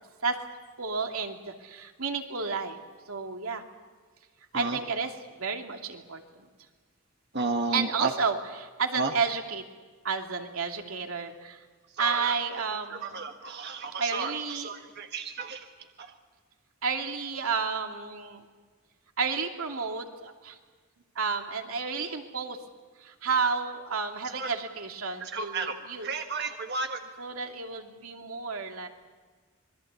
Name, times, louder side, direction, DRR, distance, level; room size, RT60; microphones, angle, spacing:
voice 1, 0.8-2.8 3.1-3.6 4.5-5.1 5.4-6.5 7.7-9.6 10.0-11.6 12.0-13.2 14.0-14.7 16.8-18.5 19.2-20.6 21.1-22.6 23.0-26.1 27.2-28.9, right 5 dB, 90° right, 3 dB, 2.7 m, -31 dB
voice 2, 7.3-8.1 9.0-9.1 12.0-12.4 12.9-15.6 16.0-16.1 24.4-24.5 25.2-25.7 26.0-27.0, right 3 dB, 50° right, 4 dB, 1.5 m, -32 dB
26.5 x 22.0 x 8.3 m, 1.5 s
head